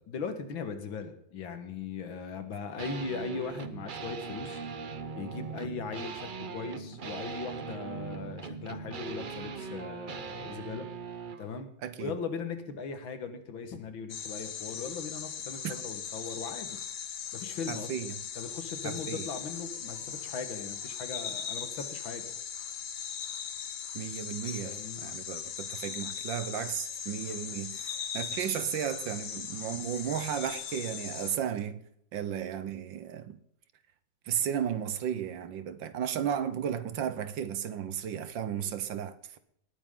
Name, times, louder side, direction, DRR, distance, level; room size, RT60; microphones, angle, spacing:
voice 1, 0.1-4.6 5.2-10.9 11.4-11.7 12.0-16.8 17.3-17.9 18.4-22.2 24.6-25.1 38.5-38.6, left 5 dB, 80° left, 2.3 m, -39 dB
sound 1, 2.8-11.5, right 5 dB, 85° right, 0.4 m, -40 dB
voice 2, 11.8-12.2 15.6-15.7 17.7-18.2 18.8-19.3 23.9-31.8 32.1-33.4 34.2-39.4, right 9 dB, 70° right, 1.6 m, -34 dB
sound 2, 14.1-31.4, left 8 dB, 60° left, 1.6 m, -39 dB
19.0 x 9.1 x 3.8 m
omnidirectional pair, 2.1 m